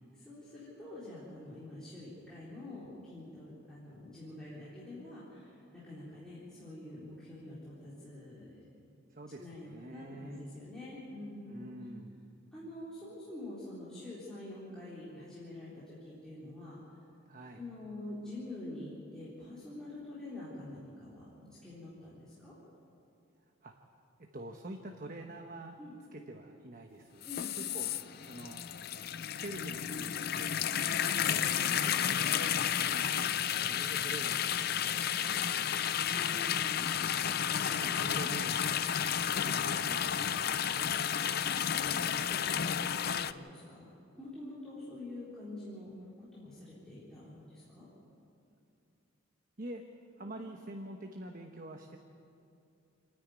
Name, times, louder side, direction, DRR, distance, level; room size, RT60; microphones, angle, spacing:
voice 1, 0.1-8.6 9.4-11.6 12.5-16.8 17.6-22.6 25.8-25.9 27.2-27.5 30.7-31.3 35.9-36.9 37.5-37.6 41.2-43.9 44.1-47.9, left 1 dB, 5° left, -11 dB, 3.9 m, -46 dB
voice 2, 9.1-10.5 11.5-12.3 17.3-17.6 23.6-23.7 24.3-25.8 26.1-27.3 27.6-27.9 28.2-28.6 29.3-30.8 31.3-36.0 37.1-39.0 39.4-41.0 49.6-49.8 50.2-52.0, right 1 dB, 45° right, 3 dB, 1.1 m, -47 dB
sound 1, 27.2-43.3, left 9 dB, 50° left, 0.5 m, -32 dB
28.5 x 10.0 x 9.5 m, 2.6 s
head